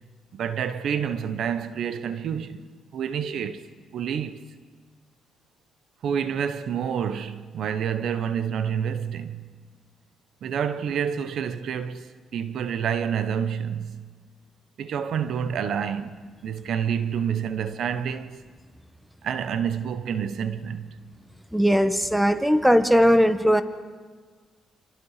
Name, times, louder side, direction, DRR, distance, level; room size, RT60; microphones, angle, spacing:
voice 1, 0.3-2.6 2.9-3.7 3.9-4.4 6.0-9.5 10.4-14.1 14.8-18.4 19.2-20.9, right 8 dB, 70° right, 1.1 m, -28 dB
voice 2, 21.5-23.6, equal, 5° right, 1.3 m, -19 dB
27.5 x 27.0 x 5.0 m
cardioid pair, 90°, 0 cm